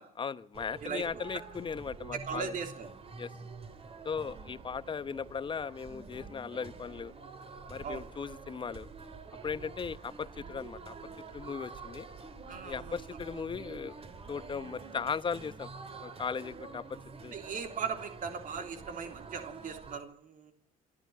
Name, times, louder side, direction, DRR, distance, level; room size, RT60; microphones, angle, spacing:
voice 1, 0.2-2.6 3.2-3.3 4.0-7.1 7.7-8.9 9.4-10.9 11.3-12.1 12.6-14.0 14.3-15.7 16.0-16.8 17.2-17.4, left 6 dB, 30° left, 16 dB, 0.9 m, -37 dB
sound 1, 0.5-20.0, right 4 dB, 35° right, 3.5 m, -47 dB
voice 2, 2.1-2.9 7.8-8.1 12.4-13.0 17.3-20.5, right 6 dB, 50° right, 6 dB, 3.2 m, -38 dB
26.5 x 12.0 x 9.4 m, 0.63 s
cardioid pair, 110°, 17 cm